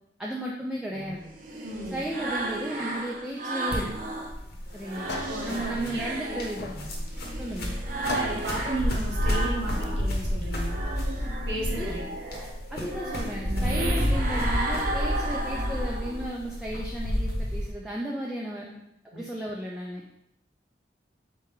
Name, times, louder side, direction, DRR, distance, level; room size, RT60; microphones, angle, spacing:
voice 1, 0.2-1.2 1.9-3.9 4.7-5.1 5.4-6.8 7.4-7.7 11.8-11.9 12.7-18.7 19.1-20.0, equal, 5° right, -4 dB, 0.4 m, -34 dB
sound 1, 0.9-4.3 4.7-10.1 10.4-16.3, right 2 dB, 45° right, 0.6 m, -34 dB
voice 2, 1.6-2.0 5.2-6.4 7.5-7.6 8.1-10.8 11.4-12.0 18.6-18.8 19.1-19.2, right 1 dB, 85° right, -4 dB, 1.6 m, -34 dB
sound 2, 3.7-17.7, equal, 60° left, 0.9 m, -30 dB
sound 3, 4.1-10.2, left 3 dB, 75° left, 0.4 m, -40 dB
4.3 x 2.9 x 3.6 m, 0.82 s
head